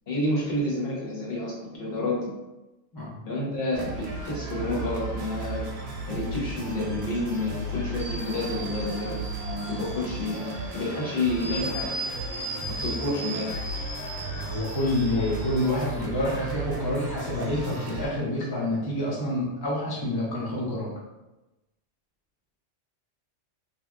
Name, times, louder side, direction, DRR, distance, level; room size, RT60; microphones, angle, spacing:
voice 1, 0.1-2.3 3.2-3.9 4.2-5.6 6.1-10.5 10.7-11.9 12.8-13.5 15.5-15.6, left 1 dB, 55° left, -5 dB, 1.0 m, -29 dB
sound 1, 3.7-18.1, right 2 dB, 65° right, 0.8 m, -35 dB
sound 2, 8.0-15.7, right 1 dB, 20° right, 0.7 m, -38 dB
voice 2, 14.4-20.9, left 1 dB, 30° left, -5 dB, 0.5 m, -28 dB
2.8 x 2.0 x 3.4 m, 1.0 s
omnidirectional pair, 1.3 m